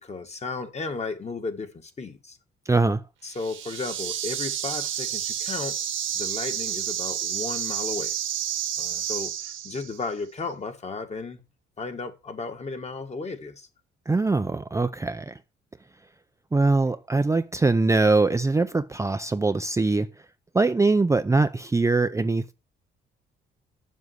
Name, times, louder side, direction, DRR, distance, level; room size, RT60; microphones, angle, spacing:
voice 1, 0.0-2.4 3.2-5.8 6.1-8.1 8.8-11.4 11.8-13.7, left 4 dB, 35° left, 1.8 m, -34 dB
voice 2, 2.7-3.0 14.1-15.4 16.5-20.1 20.5-22.5, right 3 dB, 15° right, 0.5 m, -22 dB
sound 1, 3.3-10.0, right 10 dB, 85° right, 1.7 m, -30 dB
7.4 x 6.6 x 7.9 m
cardioid pair, 90°, 20 cm